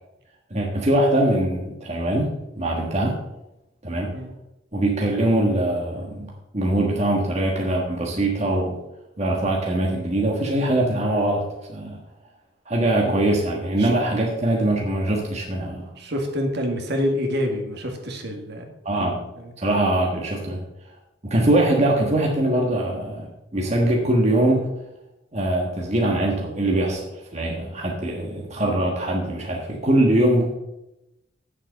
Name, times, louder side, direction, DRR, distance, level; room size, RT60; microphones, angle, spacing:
voice 1, 0.5-3.2 3.8-4.1 4.7-8.8 9.2-11.4 11.7-12.0 12.7-15.9 18.8-19.2 19.6-20.6 21.2-23.3 23.5-24.7 25.3-30.6, right 1 dB, 30° right, -1 dB, 1.4 m, -22 dB
voice 2, 16.0-18.7 19.0-19.1 19.4-19.5 26.0-26.2, equal, 55° right, 3 dB, 1.8 m, -27 dB
9.0 x 7.5 x 6.4 m, 0.92 s
head